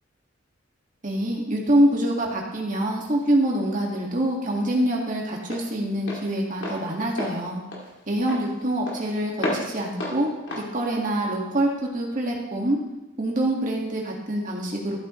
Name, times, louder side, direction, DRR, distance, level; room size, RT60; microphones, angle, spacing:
voice 1, 1.0-7.6 8.1-10.3 10.7-12.8 13.2-15.0, right 1 dB, 40° right, -1 dB, 2.0 m, -25 dB
Walk footsteps, 3.2-11.9, left 1 dB, 60° left, 2.6 m, -35 dB
13.5 x 8.3 x 3.2 m, 1.0 s
head